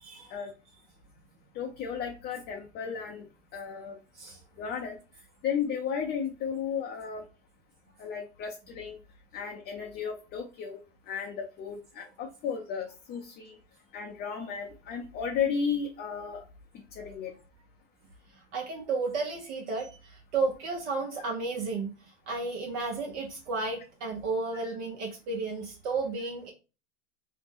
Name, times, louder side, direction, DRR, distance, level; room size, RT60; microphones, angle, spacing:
voice 1, 0.0-0.3 4.1-4.4 18.5-21.9 22.3-26.5, right 3 dB, 65° right, 0 dB, 0.8 m, -33 dB
voice 2, 1.5-3.2 3.5-4.0 4.6-5.0 5.4-7.2 8.0-9.0 9.3-10.8 11.1-13.6 13.9-16.4 17.0-17.3 24.5-24.8, left 7 dB, 30° left, 1 dB, 0.4 m, -34 dB
2.5 x 2.1 x 3.5 m, 0.33 s
hypercardioid pair, 100°, 37 cm